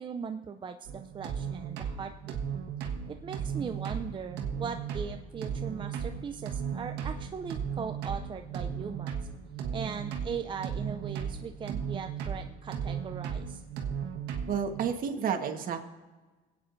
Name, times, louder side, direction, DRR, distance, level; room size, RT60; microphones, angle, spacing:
voice 1, 0.0-2.4 3.1-9.2 9.7-13.6, right 6 dB, 30° right, 6 dB, 0.5 m, -39 dB
sound 1, 0.9-14.8, right 7 dB, 85° right, 1.4 m, -36 dB
voice 2, 14.5-15.8, right 7 dB, 55° right, 5 dB, 1.4 m, -30 dB
26.0 x 8.8 x 2.6 m, 1.3 s
cardioid pair, 110°, 17 cm